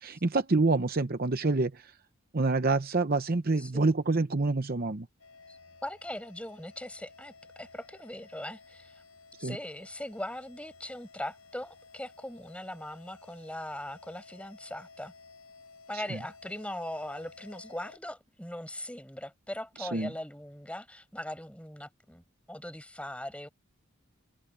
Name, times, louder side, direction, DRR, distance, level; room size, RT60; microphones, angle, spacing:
voice 1, 0.0-1.9 2.3-5.1 9.4-9.6 15.9-16.2 19.8-20.1, right 3 dB, 45° right, 0.8 m, -27 dB
voice 2, 3.6-3.9 5.5-9.0 9.4-15.1 15.9-23.5, left 1 dB, 5° left, 5.1 m, -40 dB
sound 1, 5.2-18.0, left 4 dB, 75° left, 7.0 m, -55 dB
open air
head